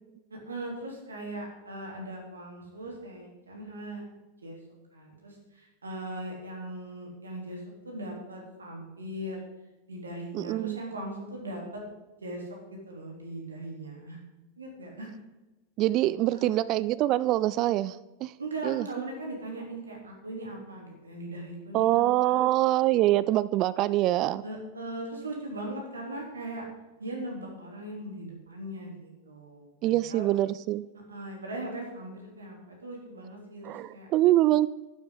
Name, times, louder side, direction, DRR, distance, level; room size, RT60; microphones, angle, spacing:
voice 1, 0.3-4.0 4.4-4.6 4.9-9.4 9.9-11.8 12.2-14.2 14.6-15.1 16.3-16.7 18.4-22.5 24.4-26.7 27.0-30.3 31.1-34.1, right 1 dB, 75° right, 0 dB, 3.2 m, -39 dB
voice 2, 10.3-10.8 15.8-18.3 18.6-18.9 21.7-24.4 29.8-30.9 33.6-34.7, right 15 dB, 40° right, 17 dB, 0.3 m, -24 dB
12.0 x 12.0 x 3.8 m, 1.1 s
figure-of-eight pair, 90°, 0 cm